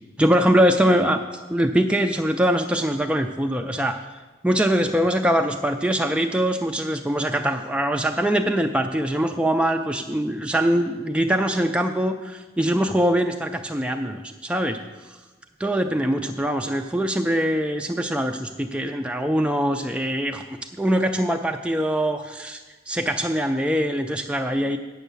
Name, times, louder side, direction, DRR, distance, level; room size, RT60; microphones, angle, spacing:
voice 1, 0.2-1.2 1.5-4.0 4.4-15.2 15.6-20.4 20.8-22.6 22.9-24.8, equal, 5° right, 5 dB, 0.3 m, -23 dB
9.0 x 6.4 x 6.8 m, 1.2 s
head